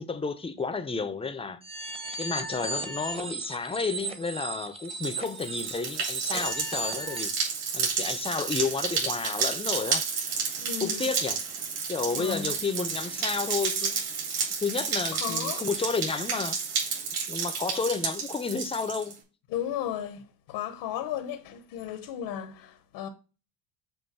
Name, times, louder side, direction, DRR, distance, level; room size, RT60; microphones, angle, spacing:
voice 1, 0.0-1.6 2.2-10.0 10.8-11.4 11.9-14.0 14.6-16.6 17.3-19.1, left 4 dB, 15° left, 0.7 m, -31 dB
sound 1, 1.6-7.4, right 3 dB, 15° right, 1.0 m, -36 dB
sound 2, 4.9-19.1, right 5 dB, 60° right, 4.1 m, -31 dB
voice 2, 10.6-11.1 12.1-12.5 15.1-15.6 19.5-23.1, left 10 dB, 65° left, 1.0 m, -35 dB
7.5 x 2.6 x 5.6 m
supercardioid pair, 100°, 42 cm